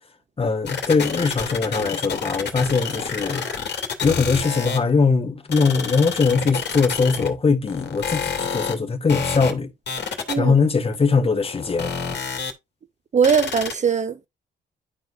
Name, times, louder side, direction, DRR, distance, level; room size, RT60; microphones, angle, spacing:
voice 1, 0.4-3.5 4.0-9.7 10.4-11.9, left 4 dB, 30° left, 1.7 m, -21 dB
sound 1, 0.7-4.9 5.5-7.3 7.7-8.7 9.1-9.5 9.9-10.6 10.9-11.0 11.4-12.5 13.2-13.7, left 6 dB, 60° left, 2.3 m, -28 dB
voice 2, 13.1-14.3, right 6 dB, 35° right, 0.6 m, -20 dB
12.0 x 4.6 x 2.5 m
cardioid pair, 90°, 20 cm